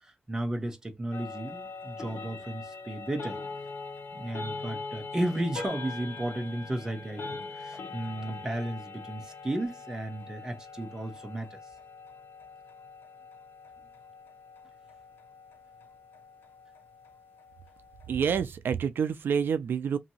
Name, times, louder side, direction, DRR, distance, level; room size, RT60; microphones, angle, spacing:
voice 1, 0.0-3.4 4.1-11.6, right 1 dB, 20° right, 0.8 m, -34 dB
sound 1, 1.1-18.4, left 4 dB, 75° left, 0.8 m, -43 dB
voice 2, 18.1-20.0, right 7 dB, 75° right, 0.4 m, -28 dB
2.9 x 2.7 x 2.7 m
wide cardioid pair, 165°, 4 cm